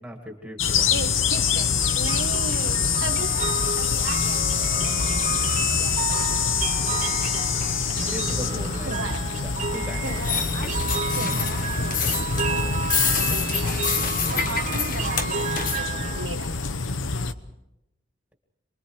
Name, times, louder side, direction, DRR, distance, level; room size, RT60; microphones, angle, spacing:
voice 1, 0.0-1.0 8.1-9.0 9.4-10.0 14.5-14.6, equal, 5° right, 1 dB, 2.3 m, -37 dB
sound 1, 0.6-17.3, left 6 dB, 90° left, 1.0 m, -26 dB
voice 2, 0.9-6.6 7.9-8.0 8.9-9.3 10.0-10.8 11.1-14.0 14.3-16.6, right 3 dB, 85° right, 7 dB, 1.6 m, -37 dB
sound 2, 1.3-16.3, right 5 dB, 40° right, 1.2 m, -32 dB
sound 3, 10.0-15.8, left 6 dB, 45° left, 1.6 m, -28 dB
28.5 x 22.0 x 4.8 m, 0.87 s
head